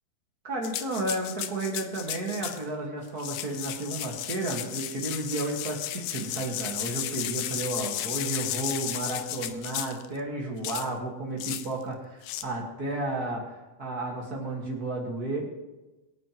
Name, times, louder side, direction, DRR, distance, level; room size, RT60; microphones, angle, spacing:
voice 1, 0.4-13.4 13.8-15.5, right 2 dB, 45° right, -1 dB, 1.3 m, -32 dB
sound 1, 0.6-2.6 3.1-10.1 10.6-10.9 11.4-11.7 12.2-12.4, left 12 dB, 90° left, 1.8 m, -34 dB
23.5 x 9.0 x 3.0 m, 1.1 s
omnidirectional pair, 4.4 m